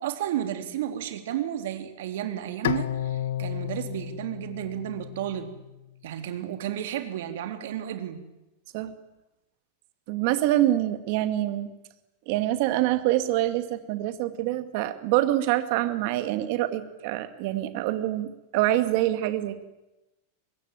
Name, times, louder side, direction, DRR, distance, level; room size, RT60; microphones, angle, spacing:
voice 1, 0.0-5.5 6.0-8.2, right 11 dB, 60° right, 8 dB, 3.5 m, -32 dB
Bowed string instrument, 2.6-5.9, left 11 dB, 80° left, 1.1 m, -32 dB
voice 2, 10.1-11.7 12.3-19.6, right 14 dB, 40° right, 11 dB, 2.2 m, -25 dB
24.0 x 21.5 x 9.1 m, 0.98 s
supercardioid pair, 175°, 0 cm